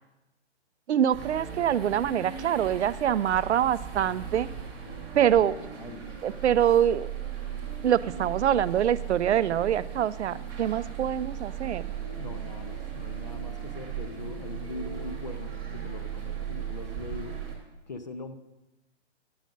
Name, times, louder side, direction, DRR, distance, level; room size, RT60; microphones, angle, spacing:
voice 1, 0.9-4.5 5.1-5.5 6.2-7.1 7.8-11.8, right 10 dB, 75° right, 17 dB, 0.5 m, -25 dB
sound 1, 1.1-17.6, right 8 dB, 10° right, 0.9 m, -37 dB
voice 2, 5.7-7.0 12.2-17.4 17.9-18.4, left 3 dB, 40° left, 9 dB, 0.5 m, -42 dB
10.5 x 6.3 x 5.2 m, 1.0 s
hypercardioid pair, 170°, 35 cm